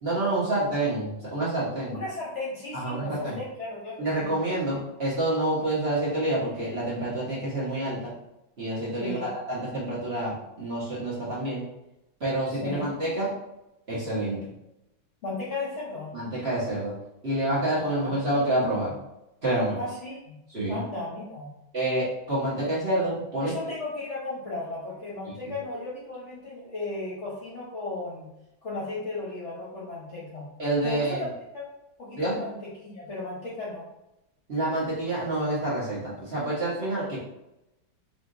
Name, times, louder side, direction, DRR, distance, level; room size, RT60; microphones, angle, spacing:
voice 1, 0.0-2.0 2.7-3.4 4.0-8.1 8.6-11.6 12.2-13.3 13.9-14.4 16.1-16.9 17.2-19.0 19.4-19.8 20.5-20.8 21.7-23.5 25.3-25.5 30.6-31.2 32.2-32.4 34.5-37.2, right 1 dB, 35° right, -8 dB, 1.3 m, -28 dB
voice 2, 1.9-4.3 9.0-9.3 12.6-12.9 15.2-16.1 17.8-18.4 19.8-20.4 20.7-21.5 23.4-28.3 28.6-30.5 30.8-31.3 31.5-31.6 32.0-33.8, left 2 dB, 45° left, -6 dB, 1.0 m, -35 dB
4.2 x 3.4 x 2.6 m, 0.89 s
omnidirectional pair, 2.1 m